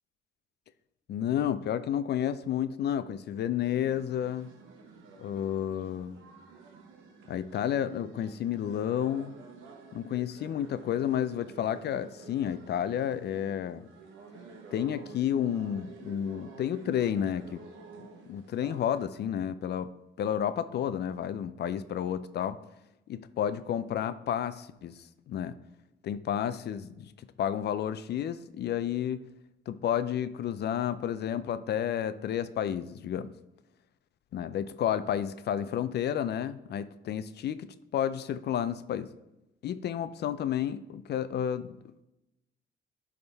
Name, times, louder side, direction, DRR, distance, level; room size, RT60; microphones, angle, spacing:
voice 1, 1.1-4.5 5.2-6.2 7.3-9.4 9.9-13.9 14.7-17.6 18.0-22.6 23.1-25.0 25.3-25.6 26.0-27.1 27.4-29.2 29.7-33.3 34.3-37.7 37.9-39.1 39.6-41.8, left 9 dB, 60° left, 14 dB, 0.4 m, -31 dB
sound 1, 3.6-19.1, right 4 dB, 90° right, 1.1 m, -51 dB
10.5 x 3.6 x 3.4 m, 0.92 s
cardioid pair, 90°, 20 cm